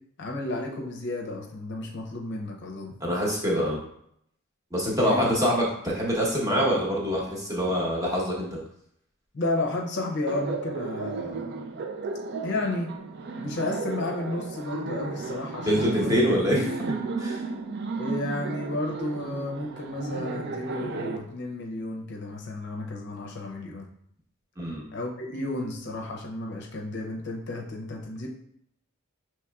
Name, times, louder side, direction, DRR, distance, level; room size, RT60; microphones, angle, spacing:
voice 1, 0.2-3.0 5.0-5.3 9.3-11.4 12.4-12.9 13.4-16.2 18.0-23.9 24.9-28.3, left 2 dB, 55° left, 0 dB, 0.6 m, -32 dB
voice 2, 3.0-3.8 4.7-8.6 15.7-16.8 17.2-17.4 24.6-24.8, equal, 15° right, -4 dB, 1.0 m, -25 dB
Laughter, 10.3-21.2, right 4 dB, 55° right, 0.4 m, -34 dB
5.9 x 3.0 x 2.3 m, 0.72 s
head